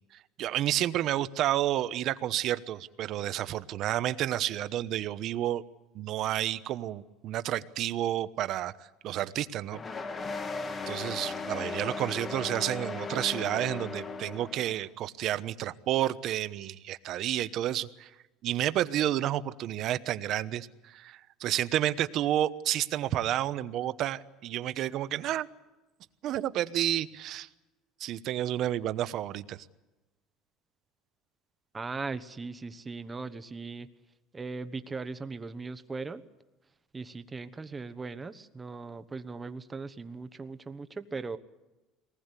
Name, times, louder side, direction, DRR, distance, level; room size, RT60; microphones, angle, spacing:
voice 1, 0.1-5.6 5.9-9.8 10.9-18.1 18.4-25.5 26.2-27.5 28.0-29.7, right 12 dB, 55° right, 13 dB, 1.0 m, -30 dB
sound 1, 9.7-14.8, left 4 dB, 25° left, 1.7 m, -37 dB
voice 2, 31.7-33.9 34.3-36.2 36.9-41.4, right 4 dB, 15° right, 11 dB, 1.1 m, -39 dB
23.5 x 19.5 x 8.3 m, 1.1 s
cardioid pair, 135°, 0 cm